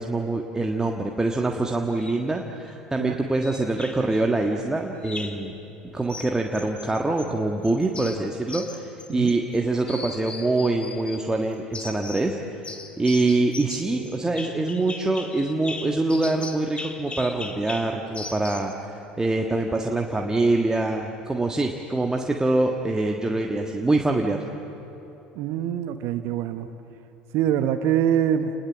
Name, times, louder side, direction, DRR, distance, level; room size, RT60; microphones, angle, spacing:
voice 1, 0.0-5.5 5.9-12.4 13.0-24.4, right 2 dB, 10° right, 2 dB, 1.5 m, -24 dB
sound 1, 1.9-2.2 3.4-4.2 5.0-5.5 6.1-7.3 7.6-9.6 9.9-11.2 11.7-12.3 12.6-18.7, left 3 dB, 20° left, 2.2 m, -38 dB
voice 2, 25.3-26.7 27.3-28.5, right 10 dB, 55° right, 9 dB, 1.0 m, -24 dB
29.0 x 20.5 x 7.4 m, 3.0 s
figure-of-eight pair, 70°, 5 cm